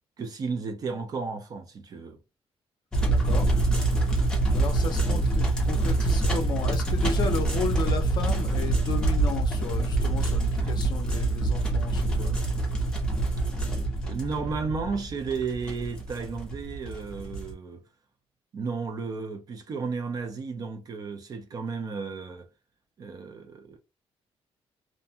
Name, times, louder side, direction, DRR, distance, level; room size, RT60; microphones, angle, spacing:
voice 1, 0.2-2.2 10.6-10.9 14.0-17.8 18.5-22.5 23.0-23.8, right 4 dB, 40° right, 0.5 m, -33 dB
sound 1, 2.9-17.5, right 2 dB, 5° left, 0.7 m, -25 dB
voice 2, 3.1-3.5 4.5-12.4, left 5 dB, 45° left, 0.5 m, -34 dB
2.5 x 2.2 x 2.7 m
cardioid pair, 175°, 10 cm